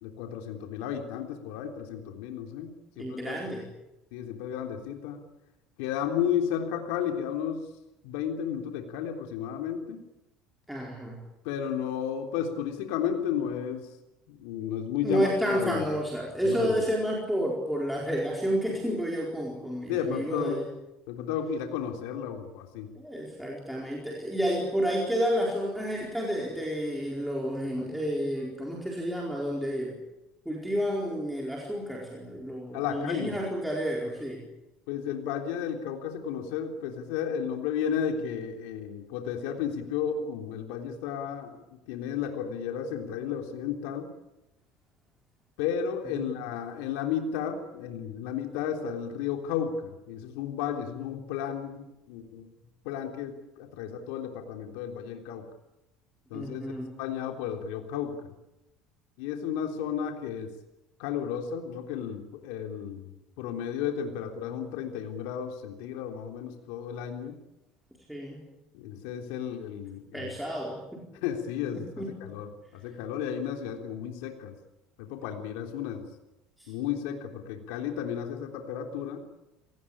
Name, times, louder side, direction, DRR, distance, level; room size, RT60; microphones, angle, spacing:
voice 1, 0.0-3.4 4.1-5.2 5.8-7.7 8.0-10.0 11.4-14.0 14.3-15.9 16.4-16.8 19.9-20.6 21.1-22.9 32.7-33.4 34.9-44.1 45.6-52.5 52.8-55.5 56.3-56.6 57.0-58.3 59.2-60.5 61.0-63.1 63.4-67.4 68.7-70.3 71.2-71.9 72.2-74.5 75.0-76.1 76.7-79.2, left 8 dB, 80° left, 4 dB, 3.5 m, -33 dB
voice 2, 3.0-3.6 10.7-11.2 15.0-20.7 22.9-30.0 30.4-34.4 46.1-46.3 56.3-56.9 68.1-68.4 70.1-71.0 71.8-72.1 76.6-76.7, equal, ahead, -3 dB, 4.5 m, -30 dB
29.0 x 18.5 x 8.8 m, 0.94 s
cardioid pair, 170°, 0 cm